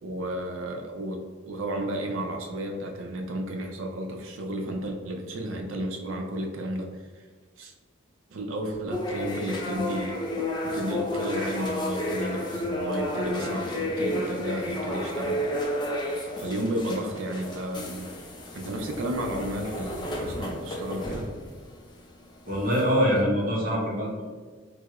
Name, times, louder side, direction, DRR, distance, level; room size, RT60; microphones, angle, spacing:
voice 1, 0.0-6.9 7.1-7.3 7.6-7.7 8.3-10.2 10.6-15.4 16.3-18.1 18.5-21.3, right 1 dB, 85° right, 3 dB, 0.4 m, -32 dB
sound 1, 8.9-21.7 22.7-23.1, left 1 dB, 25° left, 0.3 m, -31 dB
voice 2, 22.5-24.2, equal, 45° right, -4 dB, 0.7 m, -24 dB
4.5 x 2.0 x 2.4 m, 1.5 s
head